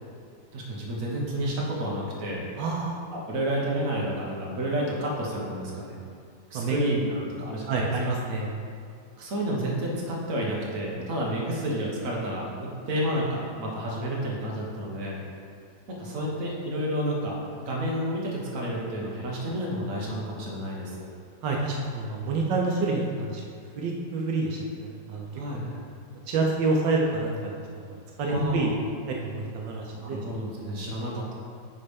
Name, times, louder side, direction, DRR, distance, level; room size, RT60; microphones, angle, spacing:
voice 1, 0.5-2.4 3.1-6.0 6.5-7.8 9.2-15.2 15.9-21.1 25.3-25.8 28.3-28.8 30.0-31.3, equal, 50° right, -3 dB, 1.5 m, -30 dB
voice 2, 2.6-3.0 6.5-6.8 7.7-8.5 21.4-23.4 23.8-25.7 26.3-28.8 29.1-30.2, right 3 dB, 80° right, -1 dB, 1.5 m, -28 dB
9.6 x 3.3 x 5.2 m, 2.3 s
omnidirectional pair, 2.0 m